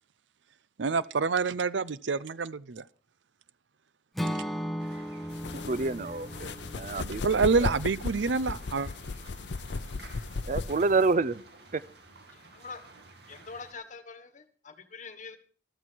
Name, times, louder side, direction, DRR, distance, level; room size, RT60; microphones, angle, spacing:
voice 1, 0.8-2.8 7.2-8.9, right 4 dB, 85° right, 0.6 m, -27 dB
Acoustic guitar / Strum, 4.1-8.3, equal, ahead, 0.9 m, -37 dB
sound 1, 4.8-13.7, right 2 dB, 65° right, 2.6 m, -52 dB
sound 2, 5.3-11.1, left 3 dB, 70° left, 0.6 m, -36 dB
voice 2, 5.7-7.7 10.5-11.4 11.7-11.8, right 3 dB, 45° right, 0.5 m, -28 dB
voice 3, 12.3-12.8 13.3-15.4, left 4 dB, 45° left, 1.5 m, -44 dB
14.5 x 12.5 x 4.6 m
head